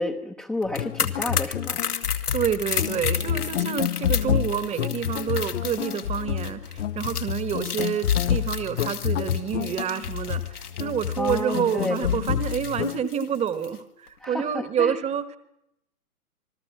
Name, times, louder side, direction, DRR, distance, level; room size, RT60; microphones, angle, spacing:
voice 1, 0.0-1.8 11.2-11.9 14.2-14.9, left 2 dB, 5° left, 0 dB, 0.9 m, -30 dB
sound 1, 0.6-13.8 14.1-14.2, left 7 dB, 80° left, 2.3 m, -33 dB
sound 2, 0.7-13.0, left 10 dB, 55° left, 0.8 m, -28 dB
voice 2, 2.3-15.4, right 8 dB, 15° right, 14 dB, 1.3 m, -28 dB
27.0 x 21.0 x 7.3 m, 0.83 s
figure-of-eight pair, 120°, 45 cm